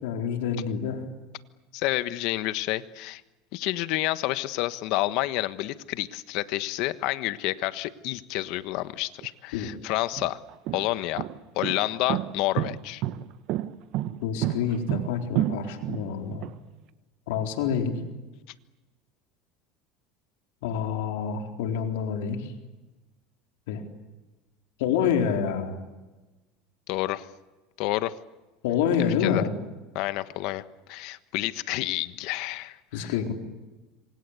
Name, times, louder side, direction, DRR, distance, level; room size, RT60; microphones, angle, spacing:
voice 1, 0.0-1.0 9.5-9.7 14.2-16.5 17.3-18.0 20.6-22.5 23.7-23.8 24.8-25.8 28.6-29.5 32.9-33.3, left 7 dB, 85° left, 3 dB, 4.2 m, -27 dB
voice 2, 1.7-3.2 3.5-10.4 10.7-11.3 11.5-13.0 26.9-27.3 27.8-28.1 29.0-29.4 29.9-30.6 30.9-33.3, left 17 dB, 65° left, 13 dB, 1.3 m, -29 dB
sound 1, 9.2-9.3 10.0-16.5, right 13 dB, 60° right, 1.2 m, -29 dB
26.5 x 25.0 x 8.3 m, 1.2 s
supercardioid pair, 130°, 0 cm